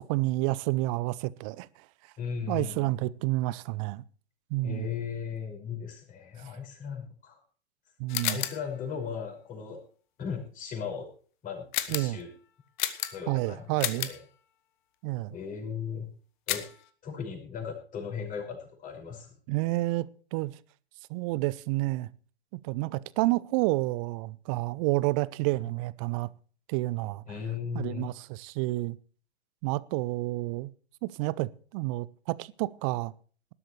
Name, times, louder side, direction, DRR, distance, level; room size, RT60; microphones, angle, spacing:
voice 1, 0.0-1.7 2.5-4.0 4.5-4.9 8.0-8.4 11.9-12.2 13.3-14.1 15.0-15.4 19.5-20.5 21.1-22.1 22.5-26.3 26.7-27.2 27.7-29.0 29.6-30.7 31.0-33.1, right 19 dB, 30° right, 0.6 m, -29 dB
voice 2, 2.2-2.9 4.6-7.4 8.2-9.8 10.2-11.1 11.4-12.3 13.1-13.6 14.1-14.2 15.3-16.1 16.5-16.7 17.0-19.3 27.3-28.1, left 6 dB, 25° left, 5.7 m, -37 dB
sound 1, 8.1-8.7 11.7-12.2 12.8-13.4 13.8-14.2 16.5-16.8, left 13 dB, 45° left, 1.5 m, -32 dB
19.5 x 12.5 x 3.2 m
figure-of-eight pair, 115°, 32 cm